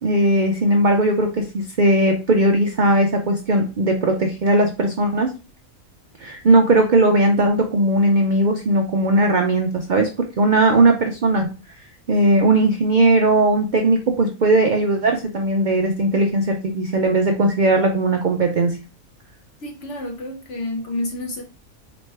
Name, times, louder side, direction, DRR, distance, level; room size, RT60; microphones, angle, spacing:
voice 1, 0.0-5.3 6.2-10.1 10.4-11.5 12.1-18.8, right 2 dB, 80° right, 0.4 m, -18 dB
voice 2, 19.6-21.4, left 1 dB, 60° left, 1.3 m, -29 dB
4.2 x 3.1 x 3.2 m
omnidirectional pair, 1.5 m